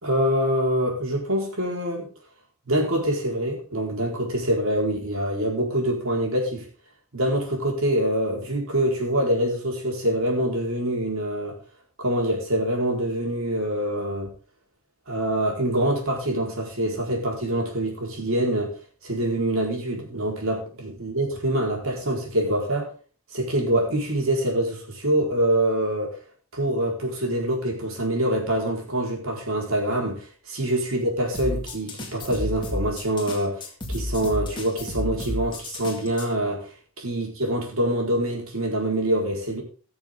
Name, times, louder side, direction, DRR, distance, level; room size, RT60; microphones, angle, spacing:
voice 1, 0.0-2.1 2.7-6.6 7.1-11.5 12.0-14.3 15.1-18.8 19.0-22.9 23.3-26.2 26.5-39.6, right 1 dB, 70° right, 0 dB, 4.1 m, -25 dB
sound 1, 31.3-36.3, left 1 dB, 20° left, 2.1 m, -32 dB
19.0 x 6.9 x 3.7 m, 0.37 s
head